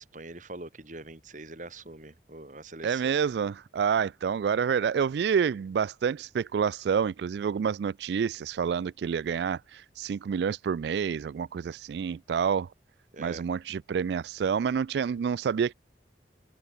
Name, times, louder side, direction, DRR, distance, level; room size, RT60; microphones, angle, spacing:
voice 1, 0.0-3.2 13.1-13.4, right 2 dB, 45° right, 2.5 m, -43 dB
voice 2, 2.8-12.7 13.2-15.7, right 7 dB, 70° right, 0.3 m, -28 dB
head